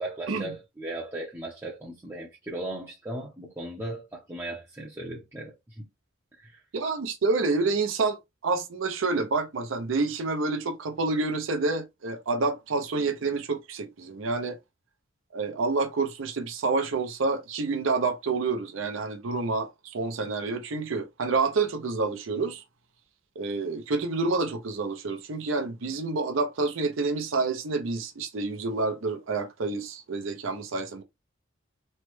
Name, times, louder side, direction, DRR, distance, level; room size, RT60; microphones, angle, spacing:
voice 1, 0.0-5.9 6.4-6.6, right 1 dB, 15° right, 0.6 m, -37 dB
voice 2, 6.7-14.6 15.3-22.6 23.4-31.0, right 3 dB, 70° right, 0.6 m, -28 dB
3.1 x 2.1 x 3.0 m
head